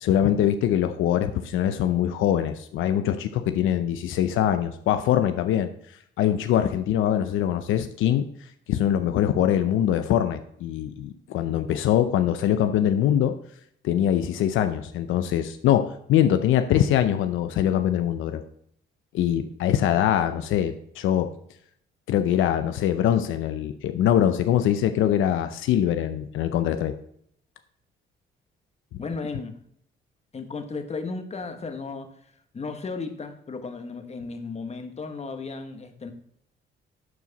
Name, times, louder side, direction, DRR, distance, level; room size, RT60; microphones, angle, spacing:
voice 1, 0.0-5.7 6.2-8.3 8.7-13.3 13.8-18.4 19.1-21.3 22.1-26.9, left 10 dB, 80° left, 9 dB, 0.6 m, -23 dB
voice 2, 29.0-29.6 30.3-32.1 32.5-36.1, left 4 dB, 35° left, 6 dB, 1.3 m, -34 dB
11.0 x 4.7 x 4.0 m, 0.69 s
cardioid pair, 90°, 20 cm